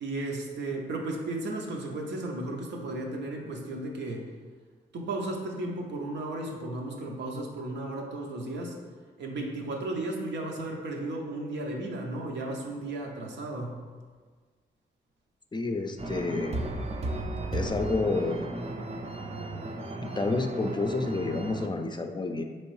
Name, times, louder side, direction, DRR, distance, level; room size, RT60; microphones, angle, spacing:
voice 1, 0.0-4.3 4.9-8.8 9.2-13.8, right 2 dB, 75° right, 0 dB, 0.7 m, -34 dB
voice 2, 15.5-16.6 17.5-18.4 20.0-22.4, left 3 dB, 25° left, 5 dB, 0.4 m, -29 dB
sound 1, 16.0-21.7, right 2 dB, 35° right, 0.5 m, -35 dB
4.4 x 3.0 x 3.1 m, 1.5 s
supercardioid pair, 50°, 18 cm